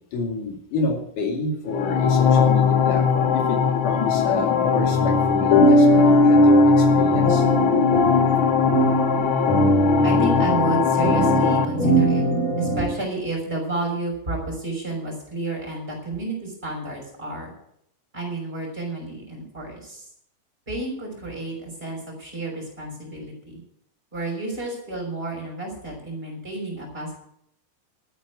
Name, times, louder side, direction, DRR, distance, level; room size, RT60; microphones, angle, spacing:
voice 1, 0.1-7.4, left 3 dB, 85° left, 2 dB, 4.0 m, -29 dB
sound 1, 1.6-11.6, left 7 dB, 65° left, 1.3 m, -21 dB
sound 2, 4.9-12.9, equal, 40° left, 4.6 m, -19 dB
voice 2, 10.0-12.2 12.6-17.5 18.1-20.1 20.7-23.6 24.1-27.1, right 2 dB, 15° right, 0 dB, 5.9 m, -30 dB
13.0 x 9.3 x 8.2 m, 0.73 s
omnidirectional pair, 3.6 m